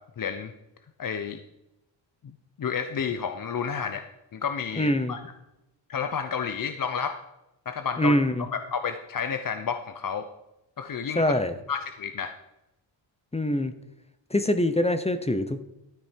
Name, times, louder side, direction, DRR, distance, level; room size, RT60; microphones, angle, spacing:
voice 1, 0.2-0.5 1.0-1.4 2.2-4.1 4.3-5.2 5.9-7.2 7.7-8.2 8.5-10.3 10.8-11.3 11.7-12.3, left 6 dB, 45° left, 8 dB, 0.8 m, -31 dB
voice 2, 4.8-5.1 8.0-8.4 11.1-11.5 13.3-13.7 14.3-15.6, left 1 dB, 15° left, 10 dB, 0.9 m, -24 dB
13.0 x 8.6 x 4.6 m, 0.90 s
cardioid pair, 80°, 47 cm